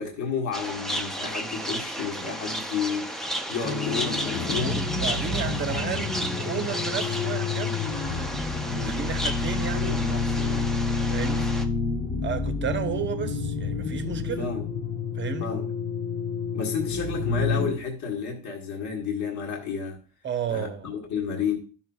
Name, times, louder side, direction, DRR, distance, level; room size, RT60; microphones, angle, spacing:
voice 1, 0.0-4.7 8.7-9.0 9.7-11.0 11.3-11.4 14.4-14.7 15.4-15.7 16.5-20.0 20.5-21.6, left 5 dB, 50° left, 1.6 m, -32 dB
sound 1, 0.5-11.6, equal, ahead, 0.5 m, -33 dB
sound 2, 3.6-17.7, left 4 dB, 20° left, 0.9 m, -29 dB
voice 2, 4.4-10.0 11.1-11.5 12.2-14.5 15.1-15.5 20.2-21.0, right 7 dB, 30° right, 0.9 m, -33 dB
12.0 x 5.9 x 2.3 m
cardioid pair, 125°, 38 cm